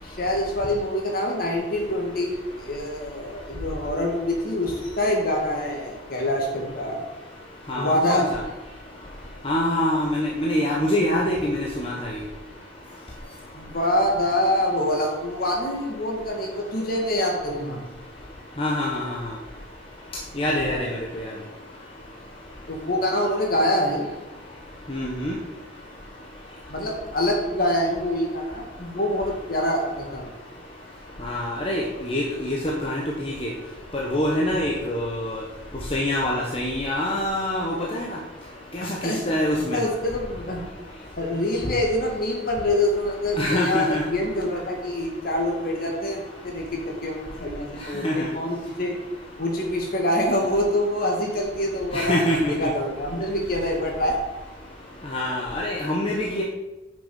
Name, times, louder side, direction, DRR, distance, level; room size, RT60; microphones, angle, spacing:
voice 1, 0.0-7.0 7.7-8.2 13.5-17.8 20.5-20.8 22.7-24.1 26.7-30.3 38.8-39.2 39.7-40.6 41.2-49.0 49.4-52.2 52.5-54.2, left 1 dB, 50° left, 0 dB, 2.2 m, -25 dB
voice 2, 7.7-8.2 9.4-11.9 18.6-19.2 20.4-20.9 21.1-21.2 24.9-25.3 31.2-33.5 34.1-35.4 35.9-38.1 38.7-39.8 43.4-44.0 48.0-48.3 51.9-52.5 55.1-56.4, left 1 dB, 30° left, -3 dB, 1.2 m, -25 dB
9.7 x 6.5 x 5.5 m, 1.1 s
head